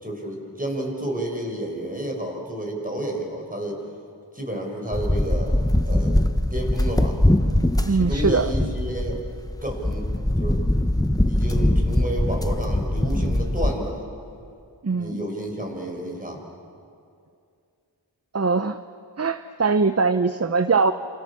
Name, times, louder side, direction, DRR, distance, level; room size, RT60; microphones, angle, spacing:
voice 1, 0.0-3.8 4.3-5.6 5.9-6.2 6.5-7.2 7.9-9.2 9.6-10.1 10.4-10.6 11.2-14.0 14.9-16.4, right 1 dB, 20° right, 1 dB, 6.1 m, -30 dB
sound 1, 4.9-13.7, left 1 dB, 10° left, 1.2 m, -22 dB
voice 2, 7.8-8.5 14.8-15.2 18.3-18.8 19.2-20.9, right 4 dB, 35° right, 11 dB, 0.7 m, -21 dB
29.0 x 28.5 x 7.3 m, 2.4 s
wide cardioid pair, 50°, 42 cm